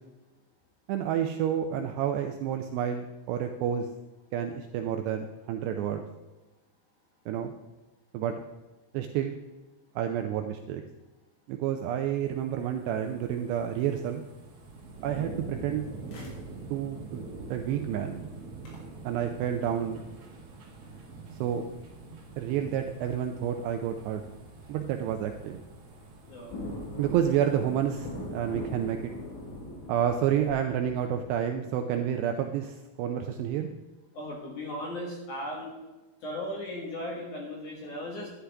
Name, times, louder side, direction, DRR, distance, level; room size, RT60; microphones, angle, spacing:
voice 1, 0.9-3.9 4.3-6.0 7.3-7.5 8.1-8.3 8.9-9.3 10.0-10.8 11.5-14.2 15.0-15.9 16.7-17.2 17.5-18.2 19.0-20.0 21.4-21.6 22.4-24.2 24.7-25.6 27.0-29.1 29.9-33.7, right 9 dB, 85° right, 5 dB, 2.5 m, -29 dB
sound 1, 11.9-30.1 30.5-30.6, right 3 dB, 55° right, 1.7 m, -45 dB
sound 2, 14.6-22.6 22.9-23.0 23.6-23.9 24.3-24.7 25.1-25.2 25.5-31.3, left 1 dB, 75° left, 5.0 m, -43 dB
voice 2, 26.3-26.6 34.1-35.8 36.2-38.3, left 1 dB, 60° left, -1 dB, 2.2 m, -37 dB
11.5 x 11.0 x 3.4 m, 1.1 s
omnidirectional pair, 5.4 m